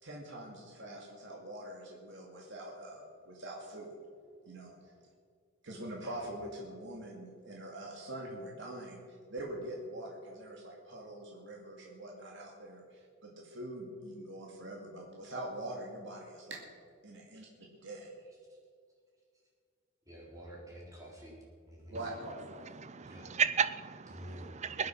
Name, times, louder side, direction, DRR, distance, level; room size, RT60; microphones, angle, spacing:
voice 1, 0.0-3.9 4.5-4.9 5.6-9.0 9.3-16.7 17.0-18.1 21.9-22.6, right 1 dB, 65° right, -2 dB, 2.3 m, -44 dB
voice 2, 20.1-21.4 21.6-22.0 23.0-23.2 24.1-24.5, equal, 15° right, -3 dB, 4.0 m, -49 dB
voice 3, 22.2-24.9, right 7 dB, 35° right, 14 dB, 0.5 m, -34 dB
21.5 x 9.5 x 5.7 m, 2.1 s
head